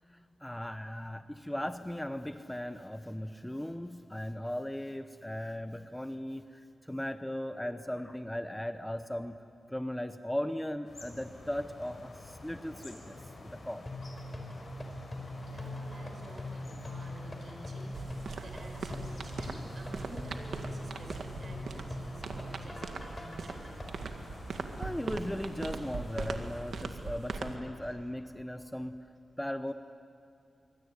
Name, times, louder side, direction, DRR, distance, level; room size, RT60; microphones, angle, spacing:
voice 1, 0.4-9.4 9.7-13.9 24.8-29.0 29.4-29.7, left 1 dB, 10° left, 9 dB, 0.9 m, -37 dB
sound 1, 10.8-26.5, left 2 dB, 50° left, 6.2 m, -48 dB
sound 2, 13.9-23.8, left 1 dB, 25° left, 5.0 m, -42 dB
voice 2, 15.5-18.1 18.4-23.8, right 1 dB, 60° right, 2 dB, 6.5 m, -50 dB
sound 3, 17.9-27.6, right 4 dB, 85° right, 1.9 m, -40 dB
25.0 x 25.0 x 9.6 m, 2.4 s
wide cardioid pair, 95°, 0 cm